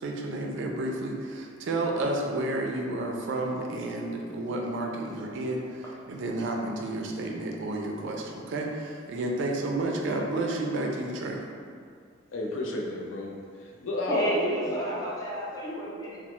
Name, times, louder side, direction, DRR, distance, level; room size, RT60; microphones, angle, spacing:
voice 1, 0.0-11.4, right 2 dB, 65° right, 1 dB, 0.4 m, -31 dB
voice 2, 12.3-14.4, left 2 dB, 80° left, -1 dB, 0.5 m, -32 dB
voice 3, 14.1-16.2, equal, 20° left, -7 dB, 0.6 m, -30 dB
3.1 x 2.0 x 2.9 m, 2.2 s
head